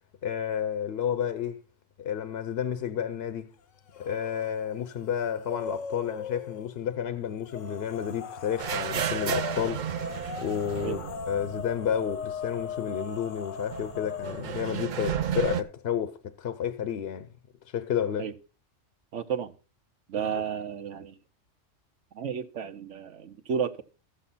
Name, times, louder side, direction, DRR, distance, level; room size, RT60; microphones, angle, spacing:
voice 1, 0.2-1.6 2.0-3.5 4.0-9.9 10.4-17.3 17.7-18.3, left 8 dB, 60° left, 0.8 m, -31 dB
sound 1, 3.9-4.5 4.9-6.7 7.4-14.6, left 5 dB, 85° left, 1.1 m, -39 dB
sound 2, 8.6-12.4 12.6-12.7 13.7-15.6, right 9 dB, 50° right, 0.6 m, -32 dB
voice 2, 19.1-19.5 20.1-21.2 22.1-23.8, right 7 dB, 75° right, 1.2 m, -32 dB
13.0 x 7.8 x 4.1 m
omnidirectional pair, 1.3 m